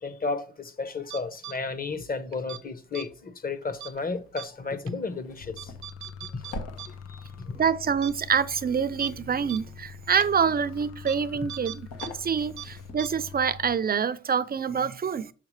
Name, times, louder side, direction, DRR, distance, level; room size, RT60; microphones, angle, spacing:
voice 1, 0.0-5.7 6.8-7.6, left 4 dB, 30° left, 1.0 m, -33 dB
sound 1, 1.1-1.6 2.3-2.6 2.9-3.1 3.8-4.0 4.4-4.5 4.9-5.0 5.6-6.9 7.2-7.3 7.7-7.8 8.0-8.1 8.5-8.6 9.0-9.1 9.5-9.6 10.2-10.3 11.1-11.2 11.5-12.1 12.3-12.7 13.0-13.1, right 12 dB, 75° right, 0.6 m, -39 dB
sound 2, 3.8-13.4, left 2 dB, 85° left, 1.7 m, -47 dB
sound 3, 5.4-13.8, left 6 dB, 55° left, 0.5 m, -44 dB
voice 2, 7.6-11.9 12.2-15.3, right 7 dB, 30° right, 0.5 m, -26 dB
6.8 x 5.8 x 3.2 m
cardioid pair, 90°, 30 cm